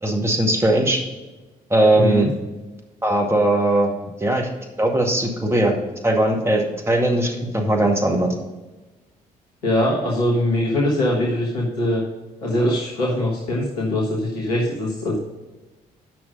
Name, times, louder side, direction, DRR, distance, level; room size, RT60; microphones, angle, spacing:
voice 1, 0.0-1.0 1.7-2.3 3.0-3.9 4.2-4.5 4.8-5.8 6.0-8.3, right 1 dB, 15° right, 1 dB, 2.1 m, -19 dB
voice 2, 1.9-2.3 9.6-12.0 12.4-15.2, left 1 dB, 80° left, -3 dB, 1.3 m, -22 dB
9.1 x 6.0 x 5.2 m, 1.2 s
figure-of-eight pair, 45°, 20 cm